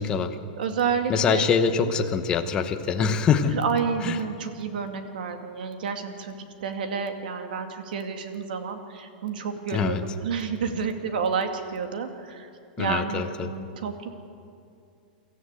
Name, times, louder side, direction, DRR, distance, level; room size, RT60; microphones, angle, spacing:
voice 1, 0.0-0.4 1.1-3.6 4.0-4.2 9.7-10.0 12.8-13.5, left 6 dB, 15° left, 7 dB, 1.0 m, -24 dB
voice 2, 0.6-1.5 1.8-1.9 3.5-6.3 6.6-12.5 12.8-14.1, right 6 dB, 70° right, 6 dB, 2.3 m, -30 dB
24.5 x 14.0 x 8.3 m, 2.5 s
supercardioid pair, 170°, 5 cm